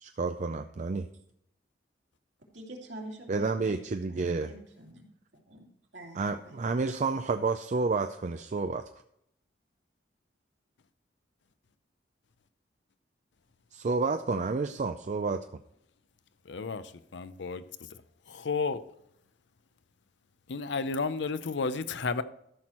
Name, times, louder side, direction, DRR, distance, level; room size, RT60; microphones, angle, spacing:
voice 1, 0.0-1.1 3.3-4.5 6.1-8.9 13.7-15.5, right 4 dB, 40° right, 0.4 m, -30 dB
voice 2, 2.5-5.0 5.3-6.7, right 1 dB, 70° right, 2.5 m, -46 dB
voice 3, 16.5-16.8 17.1-17.6 18.3-18.8 20.5-22.2, left 4 dB, 70° left, 0.6 m, -32 dB
13.5 x 6.2 x 4.3 m
head